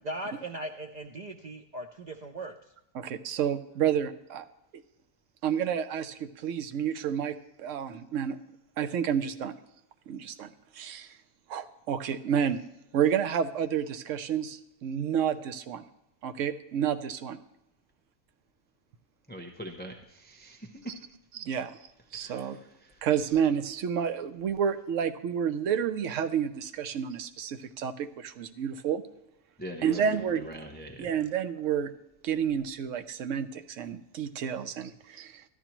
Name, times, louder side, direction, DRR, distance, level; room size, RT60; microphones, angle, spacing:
voice 1, 0.0-2.6, right 1 dB, 80° right, 4 dB, 0.3 m, -38 dB
voice 2, 2.9-4.4 5.4-8.4 8.8-9.6 10.1-11.1 11.5-12.6 12.9-15.8 16.2-17.4 21.4-21.7 22.1-22.6 23.0-29.0 29.8-30.5 31.0-31.9 32.2-35.4, right 8 dB, 65° right, 10 dB, 1.0 m, -30 dB
voice 3, 19.3-20.9 22.1-23.1 29.6-31.1, right 1 dB, 10° left, 2 dB, 0.6 m, -43 dB
13.5 x 11.0 x 3.0 m, 0.89 s
omnidirectional pair, 1.5 m